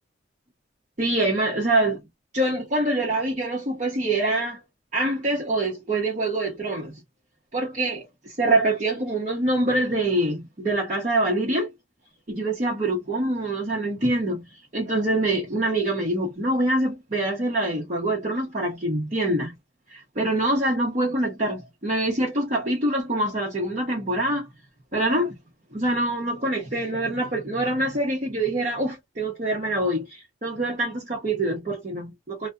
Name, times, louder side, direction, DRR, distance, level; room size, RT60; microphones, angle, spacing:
voice 1, 1.0-2.0 2.3-4.6 4.9-7.0 7.5-11.7 12.3-19.5 19.9-24.5 24.9-25.3 25.7-32.5, right 1 dB, 40° right, 0.7 m, -25 dB
2.6 x 2.1 x 2.2 m
head